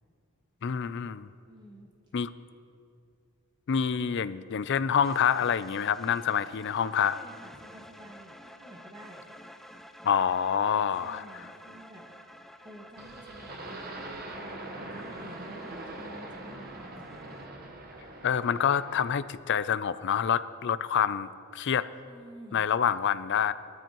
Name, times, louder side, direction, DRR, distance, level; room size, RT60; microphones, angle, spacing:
voice 1, 0.6-1.3 2.1-2.3 3.7-7.2 10.0-11.5 18.2-21.9 22.5-23.5, left 8 dB, 55° left, 14 dB, 0.4 m, -27 dB
voice 2, 1.5-1.9 6.4-6.6 7.0-9.3 10.9-12.0 12.6-14.1 14.8-17.2 22.0-22.7, equal, 20° right, -1 dB, 1.6 m, -50 dB
sound 1, 5.0-17.5, equal, ahead, 0.5 m, -51 dB
sound 2, 13.0-19.3, right 2 dB, 45° right, 1.2 m, -42 dB
20.0 x 13.5 x 3.0 m, 2.5 s
head